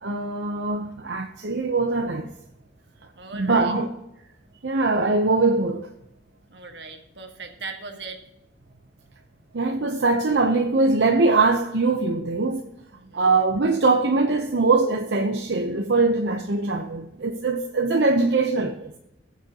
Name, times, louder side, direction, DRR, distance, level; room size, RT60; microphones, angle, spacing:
voice 1, 0.0-2.3 3.3-3.9 4.6-5.9 9.5-12.7 13.1-18.9, right 3 dB, 90° right, 0.8 m, -22 dB
voice 2, 3.2-3.7 6.5-8.2 12.9-13.3, right 4 dB, 75° right, 1.6 m, -39 dB
20.0 x 7.3 x 2.9 m
head